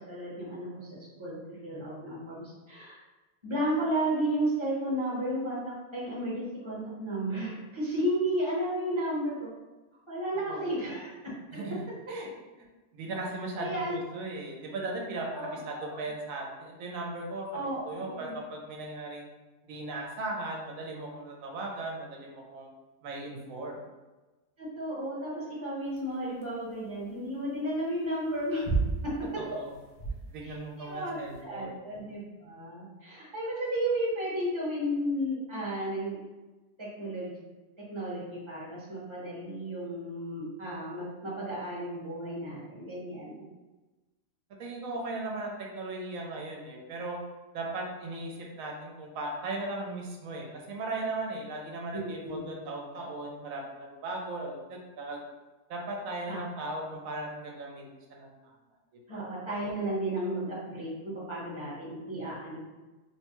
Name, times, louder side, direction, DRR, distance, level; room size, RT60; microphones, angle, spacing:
voice 1, 0.1-0.9 1.2-3.0 3.4-5.6 5.9-9.5 10.1-11.1 13.6-14.0 15.3-15.9 17.5-18.4 24.6-28.6 30.4-31.2 31.4-36.2 36.8-37.3 37.9-43.4 51.9-52.4 56.3-56.4 59.1-62.6, right 1 dB, 25° right, -8 dB, 0.9 m, -33 dB
voice 2, 12.9-19.3 19.7-22.7 23.0-23.8 29.4-29.7 30.3-31.7 44.6-47.2 47.5-55.2 55.7-57.8 58.1-58.3 59.1-59.2, right 2 dB, 70° right, 0 dB, 1.0 m, -37 dB
sound 1, 25.9-31.4, right 4 dB, 70° left, 1.0 m, -34 dB
3.0 x 2.2 x 2.9 m, 1.2 s
omnidirectional pair, 1.5 m